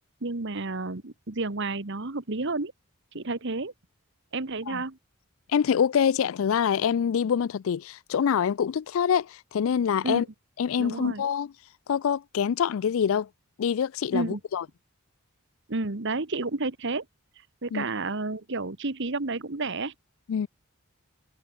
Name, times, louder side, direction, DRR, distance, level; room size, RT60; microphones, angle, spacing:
voice 1, 0.2-2.7 3.1-3.7 4.3-5.0 10.0-10.2 10.8-11.2 14.1-14.4 15.7-17.0 17.6-19.9, right 3 dB, 55° right, 1.4 m, -31 dB
voice 2, 5.5-10.2 10.6-11.5 11.9-13.3 13.6-14.6 17.7-17.8 20.3-20.5, left 7 dB, 65° left, 0.3 m, -25 dB
head